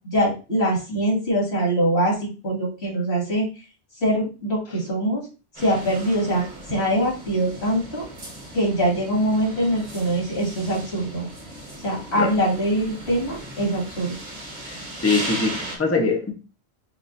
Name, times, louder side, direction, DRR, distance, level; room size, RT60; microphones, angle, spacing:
voice 1, 0.0-3.5 4.0-5.3 5.6-8.1 8.5-11.3 11.8-14.1, right 1 dB, 70° left, -3 dB, 2.2 m, -23 dB
sound 1, 5.6-15.8, right 1 dB, 35° right, 1.1 m, -37 dB
voice 2, 14.7-16.3, left 4 dB, 15° left, 3 dB, 0.6 m, -23 dB
6.0 x 2.4 x 2.5 m, 0.32 s
omnidirectional pair, 1.1 m